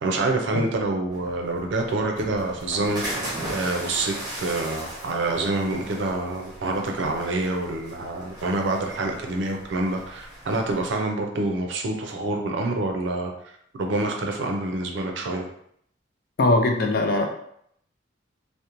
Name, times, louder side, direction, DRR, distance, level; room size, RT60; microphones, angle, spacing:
voice 1, 0.0-3.0 3.5-13.3 13.8-15.5, right 2 dB, 75° right, 3 dB, 0.4 m, -27 dB
sound 1, 1.1-11.0, right 1 dB, 20° right, 0.9 m, -38 dB
voice 2, 16.4-17.3, left 2 dB, 50° left, 3 dB, 0.4 m, -20 dB
2.5 x 2.0 x 2.9 m, 0.70 s
head